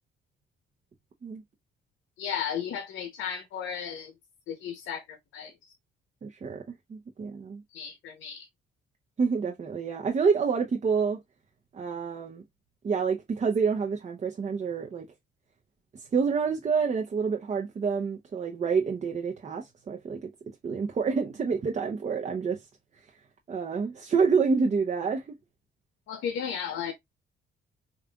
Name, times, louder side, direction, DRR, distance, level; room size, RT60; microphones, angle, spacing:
voice 1, 2.2-4.1 4.5-5.7 7.7-8.5 26.1-26.9, left 8 dB, 80° left, 0.7 m, -34 dB
voice 2, 6.2-6.6 6.9-7.6 9.2-11.2 11.7-12.4 12.8-15.1 15.9-22.6 23.5-25.4, right 5 dB, 35° right, 0.7 m, -28 dB
5.1 x 2.4 x 2.2 m
cardioid pair, 90°, 20 cm